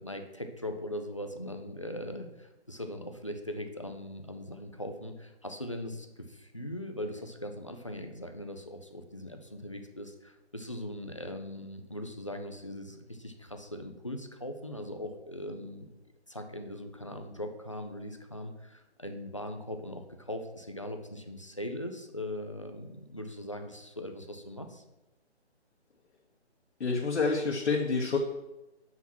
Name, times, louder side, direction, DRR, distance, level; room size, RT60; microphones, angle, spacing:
voice 1, 0.0-15.9 16.3-24.8, left 1 dB, 30° left, 5 dB, 0.5 m, -40 dB
voice 2, 26.8-28.2, left 4 dB, 70° left, -1 dB, 1.2 m, -28 dB
5.8 x 5.7 x 6.1 m, 0.99 s
hypercardioid pair, 170°, 34 cm